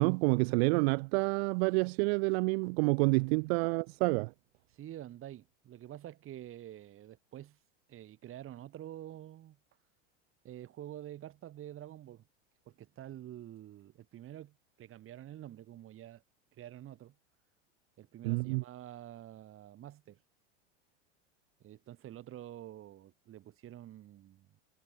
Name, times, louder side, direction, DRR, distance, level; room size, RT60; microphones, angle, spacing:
voice 1, 0.0-4.3 18.2-18.6, right 31 dB, 60° right, 0.6 m, -28 dB
voice 2, 4.7-7.6 7.9-9.6 10.4-12.3 12.7-16.2 16.5-17.1 18.0-20.2 21.6-24.6, right 12 dB, 35° right, 2.7 m, -48 dB
hypercardioid pair, 110°, 36 cm